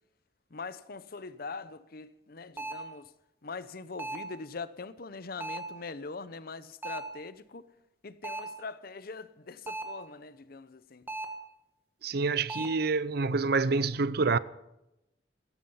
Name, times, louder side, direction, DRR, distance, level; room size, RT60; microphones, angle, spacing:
voice 1, 0.5-3.1 3.4-7.6 8.0-11.1, left 4 dB, 50° left, 0.8 m, -42 dB
sound 1, 2.6-2.9 4.0-4.4 5.4-5.8 6.8-7.2 8.2-8.6 9.7-10.1 11.1-11.5 12.5-12.9, right 2 dB, 10° right, 1.6 m, -37 dB
voice 2, 12.0-14.4, right 4 dB, 55° right, 0.6 m, -27 dB
16.5 x 14.5 x 5.6 m
head